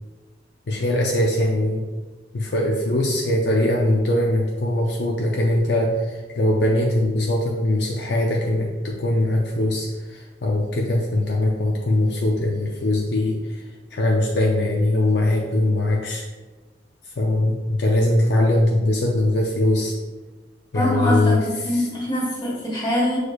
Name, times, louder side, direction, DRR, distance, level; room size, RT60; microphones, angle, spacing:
voice 1, 0.7-1.8 2.3-13.6 13.9-16.2 17.1-19.9 20.7-21.4 21.7-21.9, left 1 dB, 65° left, -1 dB, 0.5 m, -21 dB
voice 2, 20.7-23.2, left 1 dB, 25° left, -5 dB, 1.3 m, -23 dB
6.1 x 3.2 x 2.3 m, 1.2 s
head